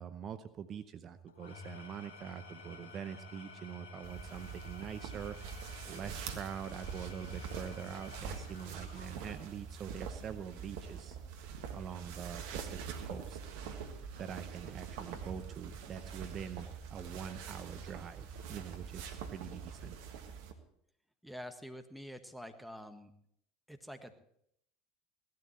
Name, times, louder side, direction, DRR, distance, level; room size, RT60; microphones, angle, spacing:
voice 1, 0.0-11.2 11.5-13.4 14.2-20.0, right 8 dB, 40° right, 11 dB, 0.7 m, -44 dB
Engine / Tools, 1.3-9.6, left 5 dB, 70° left, 2.5 m, -52 dB
sound 1, 4.0-20.5, right 6 dB, 65° right, 1.5 m, -44 dB
voice 2, 21.2-23.1 23.7-24.2, equal, ahead, 6 dB, 1.6 m, -47 dB
16.5 x 12.5 x 4.3 m, 0.72 s
figure-of-eight pair, 70°, 0 cm